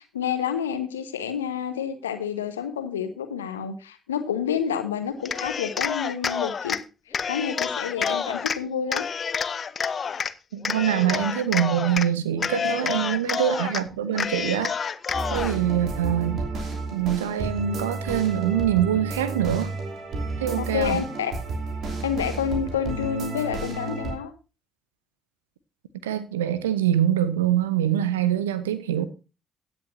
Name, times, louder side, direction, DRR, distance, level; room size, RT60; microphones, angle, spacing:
voice 1, 0.0-6.8 7.1-9.1 13.1-13.4 20.5-21.3 22.0-24.3, left 8 dB, 80° left, 1.2 m, -29 dB
Cheering, 5.2-6.8 7.1-8.6 8.9-10.3 10.6-12.1 12.4-13.8 14.1-15.6, left 6 dB, 45° left, 0.7 m, -28 dB
voice 2, 10.5-14.7 15.3-16.4 16.9-19.7 20.4-21.0 26.0-29.0, right 10 dB, 80° right, 0.9 m, -24 dB
sound 1, 15.1-24.2, right 3 dB, 55° right, 3.0 m, -31 dB
16.0 x 9.3 x 2.7 m
figure-of-eight pair, 40°, 0 cm